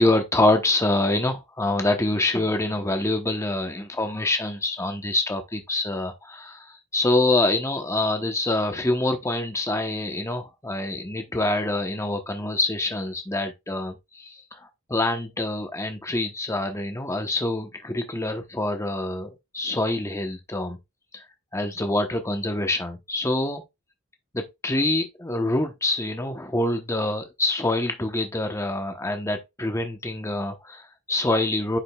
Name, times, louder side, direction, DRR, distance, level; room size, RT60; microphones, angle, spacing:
voice 1, 0.0-20.8 21.1-21.2 21.5-23.6 24.3-31.8, left 2 dB, 15° left, 0.9 m, -26 dB
9.9 x 5.1 x 2.3 m
head